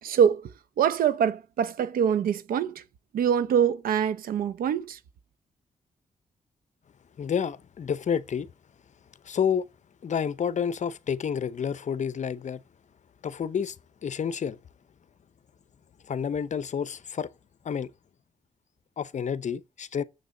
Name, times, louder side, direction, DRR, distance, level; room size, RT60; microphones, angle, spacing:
voice 1, 0.0-0.5 0.8-2.8 3.1-5.0, right 8 dB, 85° right, 0.8 m, -24 dB
voice 2, 7.2-8.5 9.3-9.7 10.0-12.6 13.2-13.7 14.0-14.6 16.1-17.3 17.6-17.9 19.0-20.0, left 7 dB, 55° left, 0.7 m, -29 dB
7.2 x 6.5 x 7.6 m
cardioid pair, 70°, 14 cm